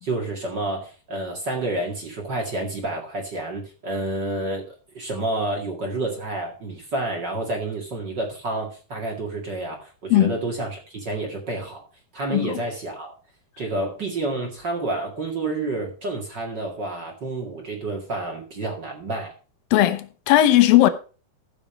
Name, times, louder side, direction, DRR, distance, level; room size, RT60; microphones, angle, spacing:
voice 1, 0.0-11.9 12.1-13.1 13.6-19.3, right 2 dB, 35° right, 2.2 m, -29 dB
voice 2, 12.3-12.6 19.7-20.9, left 14 dB, 85° left, 2.7 m, -17 dB
15.0 x 5.4 x 5.2 m
omnidirectional pair, 4.0 m